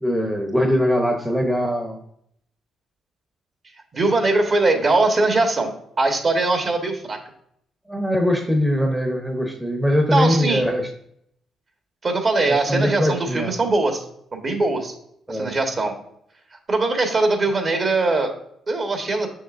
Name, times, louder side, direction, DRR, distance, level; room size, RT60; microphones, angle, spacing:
voice 1, 0.0-2.0 7.9-10.9 12.4-13.5 15.3-15.6, equal, 5° right, 3 dB, 0.9 m, -21 dB
voice 2, 3.9-5.7 6.0-7.2 10.1-10.6 12.0-14.0 14.3-14.9 15.3-15.9 16.7-18.3 18.7-19.3, right 2 dB, 40° right, 4 dB, 1.5 m, -21 dB
6.5 x 6.4 x 2.6 m, 0.70 s
cardioid pair, 90°, 0 cm